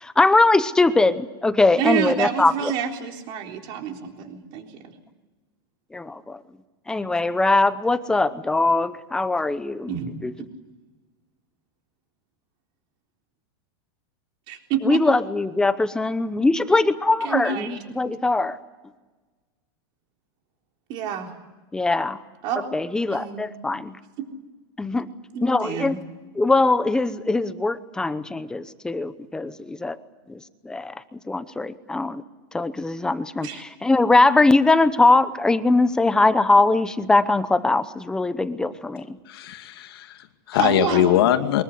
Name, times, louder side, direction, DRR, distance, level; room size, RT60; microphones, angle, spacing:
voice 1, 0.0-2.7 5.9-6.4 6.9-9.9 10.2-10.3 14.8-18.6 21.7-22.2 22.7-24.0 24.8-25.1 25.4-26.0 26.4-30.0 30.6-30.9 31.3-32.2 32.5-39.2, left 2 dB, 5° left, 13 dB, 0.8 m, -21 dB
voice 2, 1.8-4.8 9.9-10.1 14.5-15.0 17.2-17.8 20.9-21.3 22.4-22.6 23.1-23.5 25.3-26.0 33.4-33.6 40.6-41.2, right 8 dB, 40° right, 3 dB, 3.7 m, -28 dB
voice 3, 39.3-41.6, left 12 dB, 75° left, 7 dB, 2.4 m, -22 dB
24.0 x 21.5 x 8.3 m, 1.3 s
supercardioid pair, 165°, 13 cm